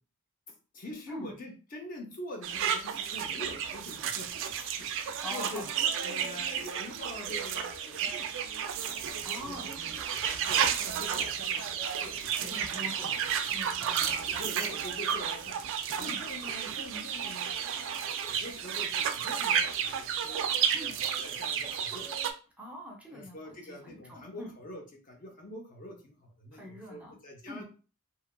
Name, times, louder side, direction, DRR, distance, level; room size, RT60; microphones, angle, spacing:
voice 1, 0.7-4.3 4.5-4.9 5.3-5.6 6.0-8.3 9.0-12.9 13.9-14.0 14.4-15.6 16.0-20.4 20.8-22.1 23.1-27.6, left 1 dB, 40° left, 2 dB, 0.5 m, -45 dB
sound 1, 2.4-22.3, right 8 dB, 60° right, 0.3 m, -32 dB
voice 2, 5.1-5.8 9.2-9.7 12.4-14.5 16.0-16.2 20.7-20.9 22.6-24.5 26.5-27.2 27.5-27.6, left 1 dB, 5° right, -1 dB, 0.6 m, -44 dB
2.8 x 2.3 x 2.2 m, 0.35 s
head